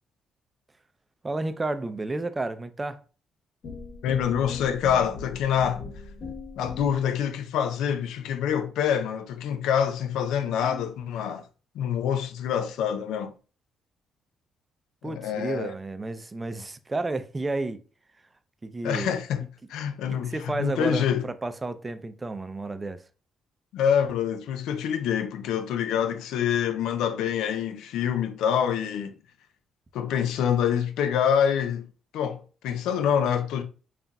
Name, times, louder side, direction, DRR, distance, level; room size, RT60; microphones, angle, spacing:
voice 1, 1.2-3.0 10.6-10.9 15.0-17.8 18.6-19.2 20.1-23.0, right 2 dB, 20° right, 0.4 m, -32 dB
sound 1, 3.6-7.2, left 4 dB, 60° left, 0.9 m, -39 dB
voice 2, 4.0-5.8 6.6-11.4 11.7-13.3 15.0-15.7 18.8-21.3 23.7-29.1 29.9-31.9 32.1-33.6, left 8 dB, 90° left, 0.4 m, -26 dB
5.4 x 2.4 x 2.3 m
cardioid pair, 90°, 0 cm